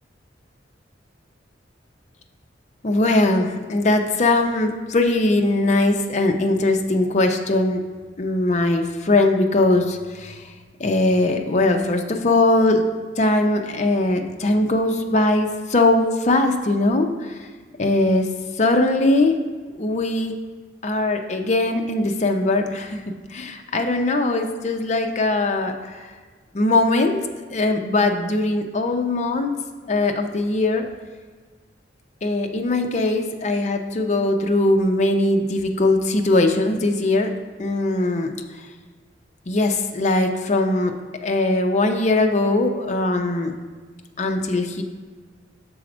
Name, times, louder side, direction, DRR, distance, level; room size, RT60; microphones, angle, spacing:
voice 1, 2.8-7.8 8.2-10.4 10.8-12.8 13.2-17.4 17.8-18.3 18.6-19.4 19.8-20.3 20.8-26.1 26.5-29.5 29.9-30.9 32.2-37.3 37.6-38.4 39.5-43.5 44.2-44.8, left 2 dB, 40° left, 4 dB, 0.6 m, -20 dB
6.3 x 4.2 x 6.0 m, 1.5 s
head